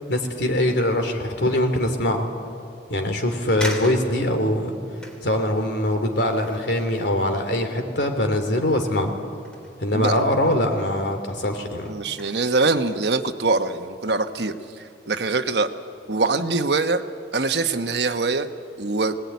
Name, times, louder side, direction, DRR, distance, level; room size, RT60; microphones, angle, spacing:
voice 1, 0.1-2.2 2.9-4.7 5.2-9.1 9.8-11.9, left 1 dB, 85° left, 4 dB, 3.0 m, -22 dB
sound 1, 3.6-8.6 8.8-10.3 10.6-11.0 11.5-13.0 13.4-13.6, equal, 5° left, 3.1 m, -41 dB
voice 2, 11.9-15.7 16.1-17.0 17.3-18.5 18.8-19.2, right 3 dB, 75° right, 8 dB, 1.0 m, -23 dB
21.0 x 19.5 x 9.4 m, 2.5 s
head